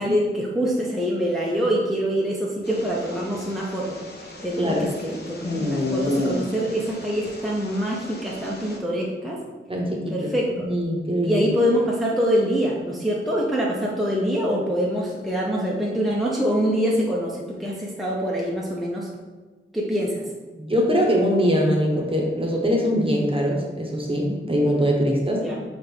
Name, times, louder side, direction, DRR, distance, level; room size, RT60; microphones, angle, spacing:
voice 1, 0.0-4.0 4.4-9.4 10.1-10.7 11.2-19.1 19.7-20.2 25.4-25.6, equal, ahead, -4 dB, 0.6 m, -25 dB
sound 1, 2.6-8.8, left 1 dB, 55° left, 0.7 m, -31 dB
voice 2, 9.7-10.3 10.6-11.4 20.6-25.5, equal, 25° right, -1 dB, 0.8 m, -22 dB
6.1 x 2.5 x 3.4 m, 1.3 s
wide cardioid pair, 65°, 21 cm